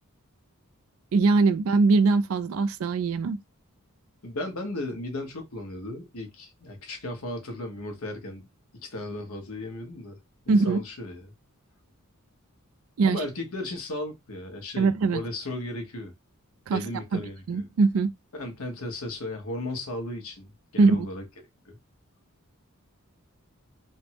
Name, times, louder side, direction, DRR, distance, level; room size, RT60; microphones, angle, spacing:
voice 1, 1.1-3.4 10.5-10.8 13.0-13.2 14.8-15.2 16.7-16.8 17.1-17.2 17.5-18.1 20.8-21.1, right 4 dB, 65° right, 0.4 m, -21 dB
voice 2, 4.2-8.5 8.8-10.2 10.4-11.3 13.0-16.1 16.7-17.7 18.3-21.2 21.6-21.8, left 1 dB, 75° left, 1.0 m, -35 dB
3.4 x 2.1 x 2.8 m
head